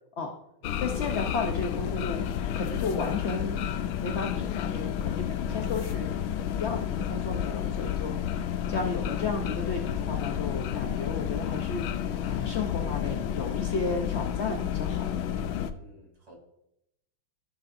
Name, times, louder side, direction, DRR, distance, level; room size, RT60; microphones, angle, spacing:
sound 1, 0.6-15.7, left 9 dB, 85° left, 1.5 m, -31 dB
voice 1, 0.8-2.2 2.5-3.7 4.0-6.2 6.5-15.4, left 4 dB, 65° left, 2 dB, 0.6 m, -33 dB
voice 2, 15.7-16.3, right 1 dB, 65° right, -1 dB, 3.5 m, -54 dB
14.0 x 7.0 x 2.6 m, 0.81 s
omnidirectional pair, 2.2 m